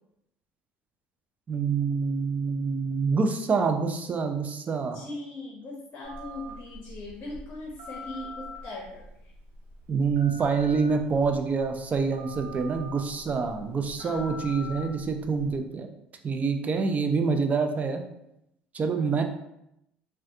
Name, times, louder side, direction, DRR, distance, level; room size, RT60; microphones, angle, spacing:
voice 1, 1.5-5.0 9.9-15.9 16.2-18.0 18.7-19.2, right 5 dB, 35° right, 5 dB, 0.4 m, -26 dB
voice 2, 4.9-9.3 14.0-14.3 18.9-19.1, left 2 dB, 45° left, -1 dB, 0.7 m, -40 dB
Telephone, 6.0-15.6, left 1 dB, 60° right, 1.0 m, -44 dB
3.3 x 2.2 x 2.7 m, 0.82 s
supercardioid pair, 80°, 5 cm